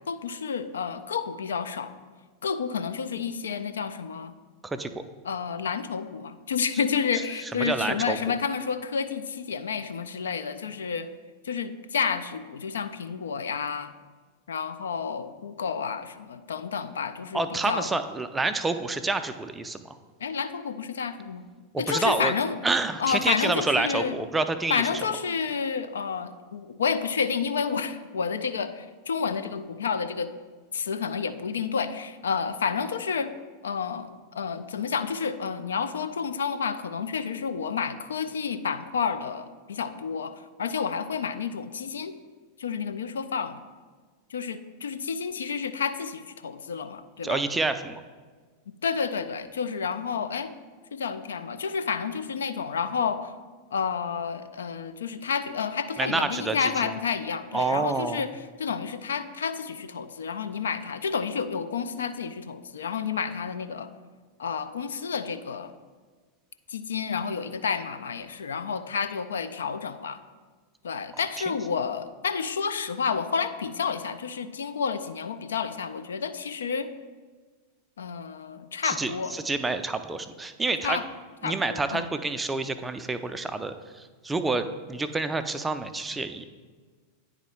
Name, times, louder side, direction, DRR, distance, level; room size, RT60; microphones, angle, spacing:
voice 1, 0.1-1.9 2.4-4.3 5.2-11.1 11.4-13.9 14.5-17.9 20.2-21.5 21.8-22.6 23.0-24.2 24.7-30.3 30.7-33.3 33.6-42.2 42.6-43.6 44.3-47.4 48.7-50.5 50.9-53.3 53.7-58.3 58.6-63.9 64.4-65.7 66.7-70.2 70.8-76.9 78.0-79.3 80.8-81.1 81.4-82.1, left 6 dB, 65° left, 12 dB, 0.3 m, -30 dB
voice 2, 4.6-5.0 7.6-8.4 17.3-19.8 21.7-22.3 22.6-24.8 47.2-48.0 56.0-56.9 57.5-58.3 78.8-81.0 81.4-86.4, right 3 dB, 10° right, 10 dB, 0.3 m, -28 dB
9.6 x 3.7 x 3.3 m, 1.4 s
figure-of-eight pair, 90°, 0 cm